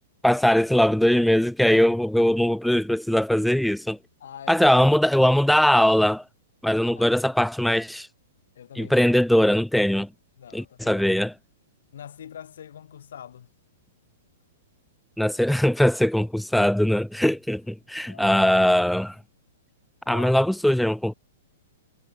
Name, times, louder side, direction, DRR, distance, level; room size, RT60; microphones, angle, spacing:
voice 1, 0.2-4.0 4.5-6.2 6.6-8.1 8.8-10.1 10.5-11.3 15.2-19.2 20.1-21.1, left 1 dB, ahead, 0.4 m, -20 dB
voice 2, 4.2-4.8 6.9-7.2 8.5-9.0 10.4-11.0 11.9-13.5 17.9-18.4 20.0-20.3, left 9 dB, 65° left, 4.0 m, -43 dB
figure-of-eight pair, 110°, 0 cm